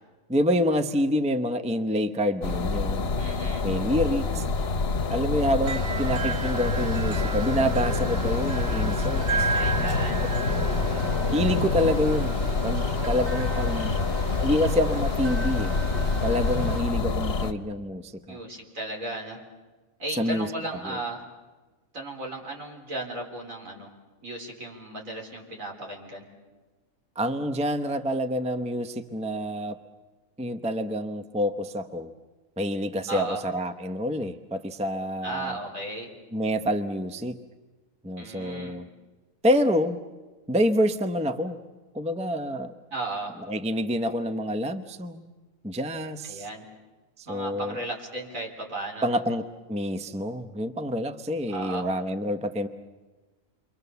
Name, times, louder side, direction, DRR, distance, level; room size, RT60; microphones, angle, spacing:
voice 1, 0.3-3.1 3.6-4.5 5.1-9.5 11.3-12.4 12.6-14.0 14.4-15.7 16.2-18.4 20.1-20.5 20.8-21.0 27.2-29.8 30.4-32.1 32.6-35.6 36.3-37.4 38.0-38.9 39.4-40.0 40.5-41.6 41.9-42.7 43.5-45.3 45.6-46.5 47.2-47.8 49.0-52.7, equal, 5° right, 9 dB, 0.7 m, -27 dB
sound 1, 2.4-17.5, left 4 dB, 50° left, 1.3 m, -26 dB
voice 2, 3.2-3.7 9.5-10.3 13.5-14.0 18.3-19.4 20.0-21.2 21.9-23.9 24.2-26.3 33.1-33.4 35.2-36.1 38.2-38.8 42.9-43.3 46.2-46.7 47.3-49.2 51.5-51.9, right 2 dB, 75° right, 0 dB, 4.3 m, -35 dB
sound 2, 5.6-16.8, right 5 dB, 55° right, 1.2 m, -35 dB
29.0 x 24.0 x 6.9 m, 1.2 s
omnidirectional pair, 1.4 m